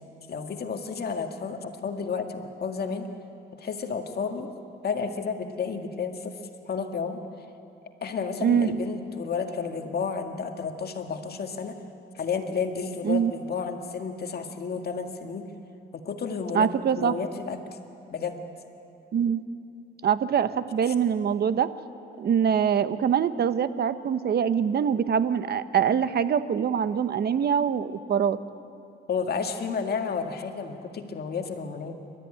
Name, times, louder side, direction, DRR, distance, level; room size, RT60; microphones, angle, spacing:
voice 1, 0.3-3.1 3.5-4.5 4.8-6.4 6.7-7.2 8.0-11.7 12.2-15.5 15.9-16.7 16.9-17.6 18.1-18.4 20.9-21.0 29.1-32.0, left 5 dB, 55° left, 5 dB, 1.9 m, -31 dB
voice 2, 8.4-8.8 13.0-13.3 16.5-17.2 19.1-19.4 20.0-21.7 22.2-28.4, right 8 dB, 55° right, 13 dB, 1.0 m, -24 dB
28.5 x 13.5 x 10.0 m, 2.7 s
cardioid pair, 90°, 20 cm